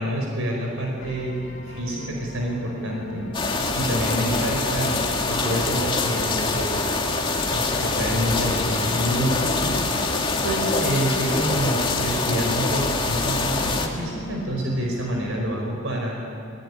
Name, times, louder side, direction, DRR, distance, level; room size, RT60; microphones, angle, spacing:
voice 1, 0.0-3.3 3.7-5.0 5.3-6.8 7.5-9.8 10.4-16.2, right 1 dB, 70° right, 0 dB, 5.1 m, -27 dB
sound 1, 1.0-15.4, left 1 dB, 65° left, 2.5 m, -39 dB
sound 2, 3.3-13.9, left 3 dB, 25° left, 2.6 m, -24 dB
25.5 x 23.0 x 9.9 m, 2.4 s
head